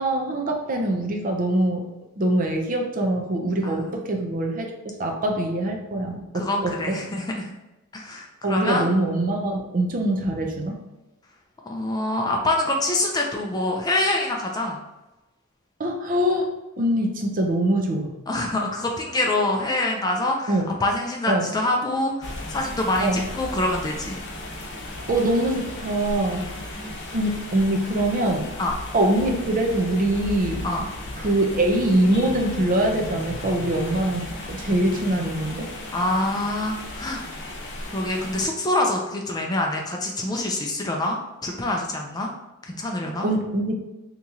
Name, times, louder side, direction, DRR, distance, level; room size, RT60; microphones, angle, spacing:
voice 1, 0.0-1.8 2.2-7.0 8.4-10.7 15.8-16.5 16.8-18.1 20.5-20.7 21.3-21.5 23.0-23.2 25.1-26.5 27.1-28.5 28.9-30.6 31.2-35.7 43.2-43.8, right 1 dB, 40° right, 2 dB, 0.5 m, -23 dB
voice 2, 6.3-7.5 7.9-8.9 11.7-14.8 18.3-24.2 26.3-26.5 28.6-28.7 30.6-30.9 35.9-37.2 37.9-42.3 42.7-43.3, left 1 dB, 20° left, 0 dB, 0.4 m, -25 dB
sound 1, 22.2-38.5, left 1 dB, 50° left, 0.8 m, -35 dB
2.9 x 2.8 x 3.6 m, 1.0 s
head